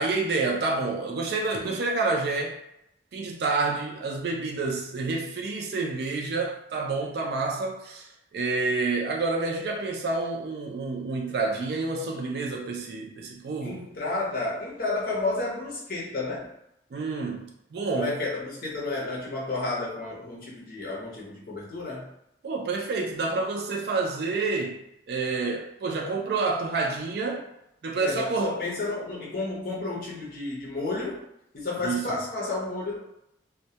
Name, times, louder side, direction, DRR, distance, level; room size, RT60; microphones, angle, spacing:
voice 1, 0.0-2.6 3.1-13.8 16.9-18.2 22.4-24.8 25.1-27.5 27.8-28.5 31.8-32.0, right 3 dB, 60° right, 1 dB, 0.3 m, -28 dB
voice 2, 13.6-16.5 18.0-22.1 28.0-31.2 31.5-33.0, left 3 dB, 55° left, -4 dB, 0.7 m, -31 dB
2.1 x 2.1 x 2.7 m, 0.82 s
head